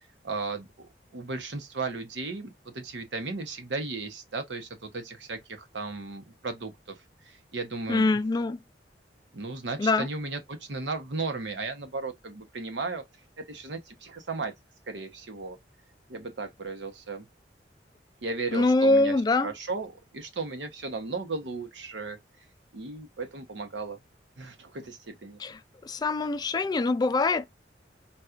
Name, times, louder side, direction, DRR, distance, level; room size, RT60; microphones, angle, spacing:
voice 1, 0.2-0.9 1.1-7.0 7.2-8.1 9.3-13.0 13.4-14.5 14.9-15.6 16.1-17.3 18.2-19.1 19.4-22.2 22.7-24.0 24.4-25.4, right 3 dB, 90° right, 0.8 m, -35 dB
voice 2, 7.9-8.6 9.8-10.1 18.5-19.5 25.4-27.5, left 3 dB, 25° left, 0.3 m, -24 dB
4.2 x 2.3 x 2.4 m
head